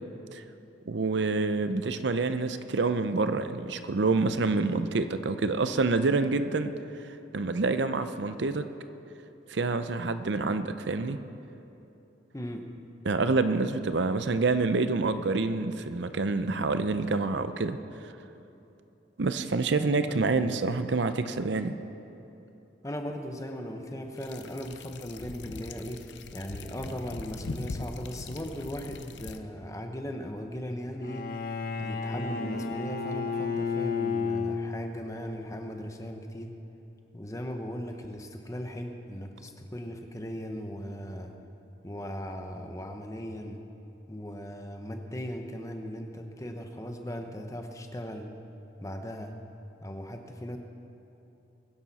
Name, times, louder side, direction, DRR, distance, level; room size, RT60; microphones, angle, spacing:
voice 1, 0.9-6.7 7.3-8.7 9.5-11.2 13.0-18.1 19.2-21.8, right 3 dB, 70° right, 10 dB, 0.6 m, -27 dB
voice 2, 22.8-31.3 31.8-36.5 37.1-41.3 41.8-43.6 44.1-48.3 48.8-49.3 49.8-50.6, equal, 15° left, 4 dB, 0.9 m, -38 dB
sound 1, 24.2-29.4, left 3 dB, 70° left, 0.7 m, -41 dB
Bowed string instrument, 31.0-35.1, left 4 dB, 50° left, 1.0 m, -32 dB
23.0 x 10.5 x 4.1 m, 2.9 s
head